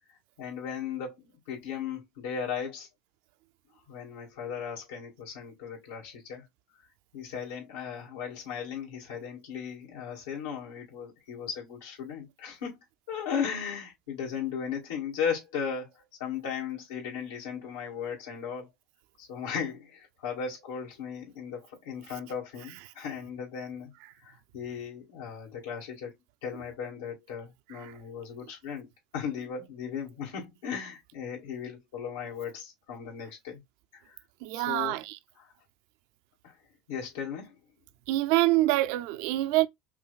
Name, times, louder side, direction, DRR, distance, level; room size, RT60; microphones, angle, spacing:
voice 1, 0.4-1.2 1.5-2.9 3.9-6.4 7.1-12.8 13.1-18.7 19.2-23.9 24.2-26.1 26.4-28.9 29.1-33.6 34.0-34.2 34.5-35.0 35.4-35.5 36.4-36.5 36.9-37.6, left 7 dB, 85° left, 2.0 m, -36 dB
voice 2, 34.4-35.2 38.1-39.7, right 17 dB, 70° right, 0.4 m, -25 dB
5.8 x 2.3 x 2.4 m
supercardioid pair, 95°, 0 cm